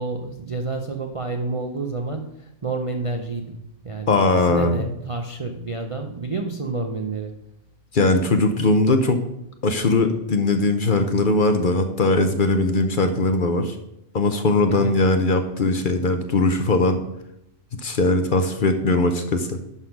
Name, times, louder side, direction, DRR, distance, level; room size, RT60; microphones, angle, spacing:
voice 1, 0.0-3.6 3.8-7.3 14.7-15.0, right 3 dB, 40° right, 3 dB, 0.5 m, -29 dB
voice 2, 4.1-4.9 7.9-9.2 9.6-13.8 14.1-17.0 17.8-19.6, left 2 dB, 50° left, 7 dB, 0.8 m, -20 dB
11.0 x 3.9 x 5.9 m, 0.84 s
omnidirectional pair, 1.3 m